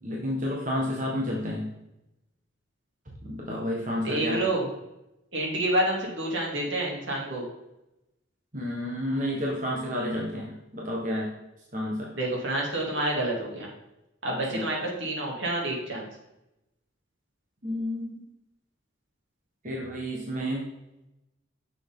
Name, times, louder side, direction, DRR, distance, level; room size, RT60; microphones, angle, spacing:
voice 1, 0.0-1.7 3.2-4.4 8.5-11.3 11.7-12.1 14.5-14.7 17.6-18.2 19.6-20.6, left 1 dB, 40° right, -3 dB, 1.6 m, -30 dB
voice 2, 4.0-4.7 5.3-7.4 12.1-13.7 14.2-16.0, right 1 dB, 70° right, -2 dB, 3.0 m, -28 dB
10.0 x 6.9 x 3.9 m, 0.91 s
head